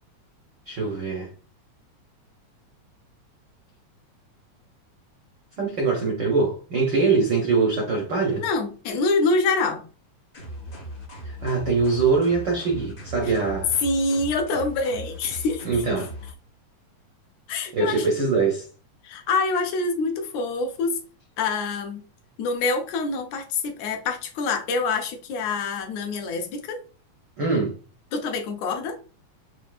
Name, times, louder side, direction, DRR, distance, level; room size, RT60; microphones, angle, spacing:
voice 1, 0.7-1.3 5.6-8.4 11.2-13.8 15.6-16.1 17.7-18.7 27.4-27.7, right 4 dB, 75° right, 1.0 m, -23 dB
voice 2, 8.4-9.8 13.8-15.7 17.5-18.1 19.0-20.9 21.4-22.0 22.4-26.8 28.1-29.0, left 3 dB, 75° left, 2.0 m, -26 dB
sound 1, 10.3-16.3, equal, 55° left, 0.7 m, -38 dB
6.2 x 2.6 x 2.3 m
omnidirectional pair, 3.3 m